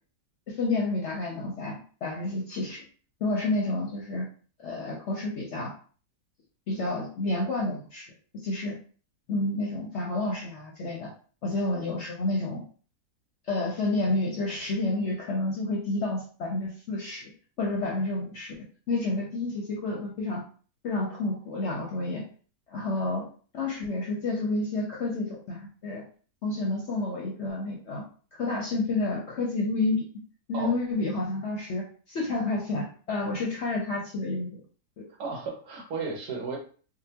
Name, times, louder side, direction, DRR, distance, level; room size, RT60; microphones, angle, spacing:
voice 1, 0.5-2.8 3.2-4.2 4.6-5.7 6.7-8.1 8.4-8.7 9.3-11.1 11.4-12.6 13.5-17.3 17.6-18.5 18.9-20.4 20.8-22.2 22.7-23.3 23.5-26.0 26.4-28.0 28.4-30.0 30.5-34.6, left 2 dB, 60° left, -2 dB, 0.7 m, -30 dB
voice 2, 35.2-36.6, right 4 dB, 75° right, 0 dB, 1.5 m, -34 dB
3.8 x 2.1 x 2.8 m, 0.41 s
omnidirectional pair, 1.7 m